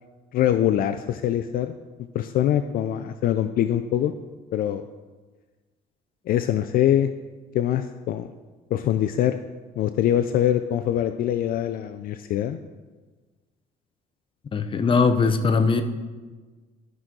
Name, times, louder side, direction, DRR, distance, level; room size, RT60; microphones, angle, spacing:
voice 1, 0.3-1.7 2.1-4.1 4.5-4.8 6.3-7.1 7.5-8.3 8.7-9.3 9.8-12.6, left 11 dB, 60° left, 9 dB, 0.4 m, -23 dB
voice 2, 14.5-15.8, left 4 dB, 30° left, 8 dB, 0.7 m, -20 dB
12.5 x 6.1 x 3.8 m, 1.3 s
cardioid pair, 110°, 17 cm